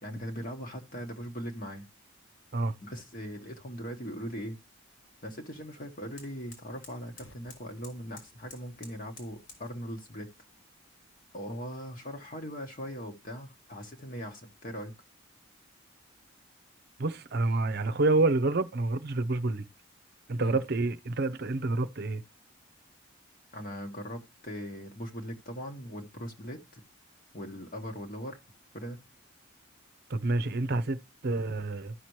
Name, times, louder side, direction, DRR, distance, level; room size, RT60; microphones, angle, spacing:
voice 1, 0.0-1.9 2.8-4.6 5.2-10.3 11.3-14.9 20.4-20.6 23.5-26.8 27.3-28.4 28.7-29.0, equal, 40° left, 1.3 m, -40 dB
sound 1, 4.3-9.7, left 3 dB, 75° left, 3.3 m, -56 dB
voice 2, 17.0-19.6 20.3-22.2 30.1-31.0 31.2-31.9, right 2 dB, 50° right, 0.7 m, -28 dB
13.0 x 5.9 x 3.1 m
head